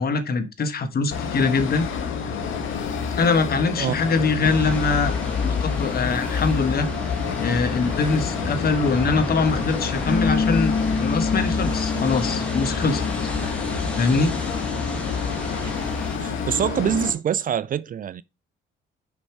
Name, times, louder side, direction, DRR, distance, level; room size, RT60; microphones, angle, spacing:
voice 1, 0.0-1.9 3.2-7.1 7.4-13.0 14.0-14.3, left 4 dB, 50° left, 1.3 m, -23 dB
sound 1, 1.1-17.1, left 6 dB, 80° left, 1.6 m, -29 dB
sound 2, 4.4-16.2, left 3 dB, 5° left, 1.9 m, -31 dB
Bass guitar, 10.1-16.3, left 4 dB, 35° left, 1.0 m, -29 dB
voice 2, 16.2-18.2, right 9 dB, 45° right, 0.4 m, -25 dB
6.0 x 5.4 x 4.6 m
cardioid pair, 90°, 20 cm